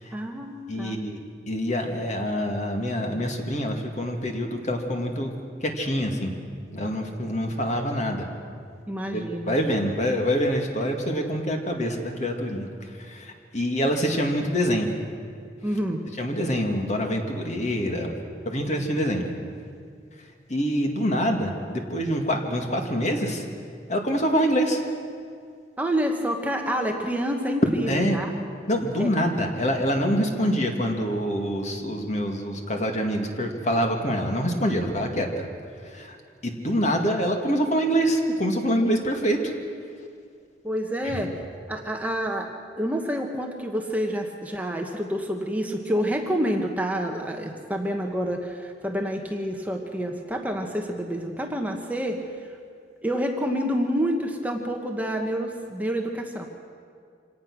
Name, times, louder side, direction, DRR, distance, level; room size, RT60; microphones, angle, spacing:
voice 1, 0.1-1.0 8.9-9.6 15.6-16.0 25.8-27.9 28.1-28.3 29.0-29.1 40.6-41.3 41.7-42.5 42.8-52.2 53.0-56.5, equal, 10° right, 2 dB, 1.3 m, -28 dB
voice 2, 0.7-5.3 5.6-6.3 6.7-8.3 9.1-14.9 16.2-19.2 20.5-23.5 23.9-24.8 27.9-28.2 28.7-35.3 35.8-36.2 36.4-39.5 41.0-41.2, equal, 40° left, 3 dB, 2.1 m, -26 dB
25.5 x 18.0 x 6.2 m, 2.2 s
head